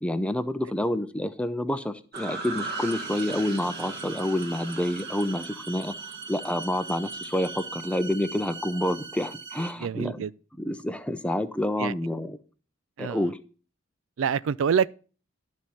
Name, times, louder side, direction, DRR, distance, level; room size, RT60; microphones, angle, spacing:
voice 1, 0.0-5.9 6.3-10.2 10.6-12.4 13.0-13.4, left 1 dB, 5° left, 0.6 m, -28 dB
Cicades Singing in the Night, 2.1-7.7, right 3 dB, 50° right, 1.4 m, -39 dB
sound 1, 2.6-9.7, right 4 dB, 25° right, 1.3 m, -40 dB
voice 2, 9.8-10.3 11.8-11.9 13.0-13.3 14.2-14.9, right 7 dB, 80° right, 0.4 m, -26 dB
12.0 x 4.3 x 7.7 m
head